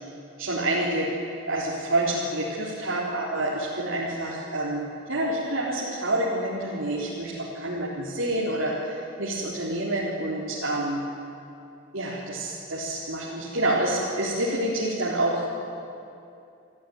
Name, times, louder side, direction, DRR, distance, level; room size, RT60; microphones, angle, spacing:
voice 1, 0.4-1.1 1.5-11.0 11.9-15.5, right 1 dB, 85° right, -7 dB, 3.8 m, -28 dB
27.5 x 15.0 x 9.5 m, 2.6 s
head